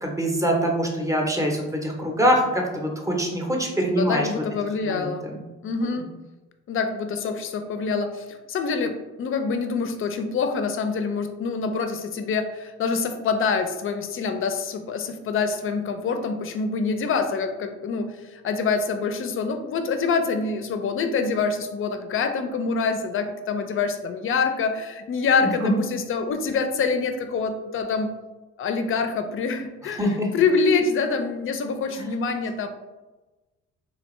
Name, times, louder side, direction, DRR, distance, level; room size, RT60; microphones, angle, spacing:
voice 1, 0.0-4.3 4.8-5.4 25.4-25.8 30.0-30.3 32.0-32.1, equal, 10° right, 0 dB, 0.7 m, -24 dB
voice 2, 4.0-5.3 5.6-6.1 6.7-28.2 28.6-32.7, left 4 dB, 45° left, 7 dB, 0.4 m, -26 dB
3.2 x 2.5 x 3.0 m, 1.1 s
cardioid pair, 90°, 30 cm